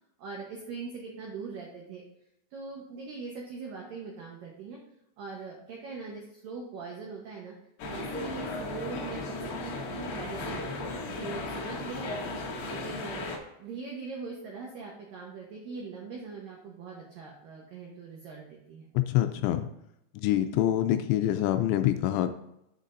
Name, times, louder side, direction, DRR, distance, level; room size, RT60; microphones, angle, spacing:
voice 1, 0.2-2.0 2.5-4.8 5.2-7.6 7.9-10.7 11.1-12.3 12.6-13.2 13.6-18.9, right 4 dB, 85° right, -1 dB, 1.9 m, -41 dB
sound 1, 7.8-13.4, left 2 dB, 65° left, 2.4 m, -36 dB
voice 2, 18.9-19.7 20.1-22.3, left 12 dB, 85° left, 8 dB, 2.8 m, -26 dB
10.5 x 7.4 x 2.6 m, 0.82 s
omnidirectional pair, 5.6 m